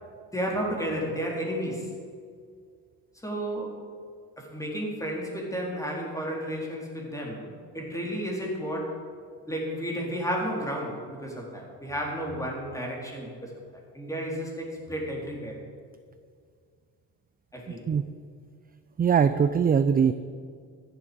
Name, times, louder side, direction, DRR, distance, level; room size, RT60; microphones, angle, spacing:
voice 1, 0.3-1.9 3.2-3.8 4.4-9.0 9.5-13.5 13.9-15.6 17.5-17.9, equal, 10° left, -2 dB, 3.8 m, -32 dB
voice 2, 19.0-20.1, right 7 dB, 25° right, 12 dB, 0.4 m, -21 dB
14.5 x 10.0 x 5.2 m, 2.1 s
cardioid pair, 90°, 40 cm